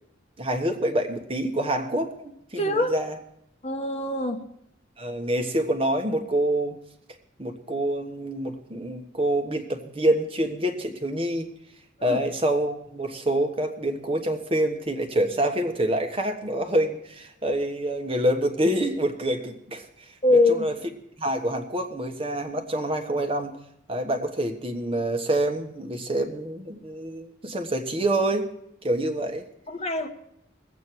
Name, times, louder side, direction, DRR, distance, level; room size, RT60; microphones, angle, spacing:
voice 1, 0.4-3.2 5.0-6.8 7.4-11.5 12.0-19.8 20.5-20.8 21.2-23.5 23.9-28.5 28.8-29.4, right 1 dB, 30° right, 4 dB, 1.2 m, -26 dB
voice 2, 2.6-2.9 3.6-4.4 12.0-12.2 20.2-20.7 29.7-30.1, left 2 dB, 35° left, 5 dB, 1.0 m, -23 dB
21.0 x 8.3 x 4.6 m, 0.76 s
head